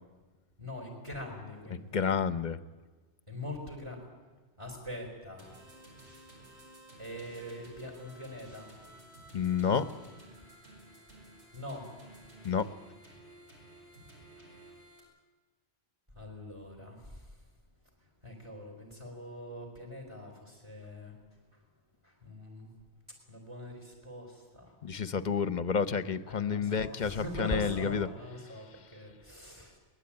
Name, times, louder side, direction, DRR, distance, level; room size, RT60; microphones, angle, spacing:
voice 1, 0.6-2.1 3.3-4.1 4.6-5.5 7.0-8.7 11.5-11.9 16.1-17.5 18.0-21.2 21.5-21.6 22.0-22.7 23.1-25.0 26.3-29.8, left 1 dB, 25° right, 2 dB, 4.2 m, -43 dB
voice 2, 1.9-2.6 9.3-9.9 12.4-12.7 24.8-28.1, left 6 dB, 45° left, 13 dB, 0.9 m, -30 dB
sound 1, 5.4-15.0, right 1 dB, 85° right, 7.3 m, -54 dB
22.5 x 19.5 x 8.8 m, 1.3 s
omnidirectional pair, 1.1 m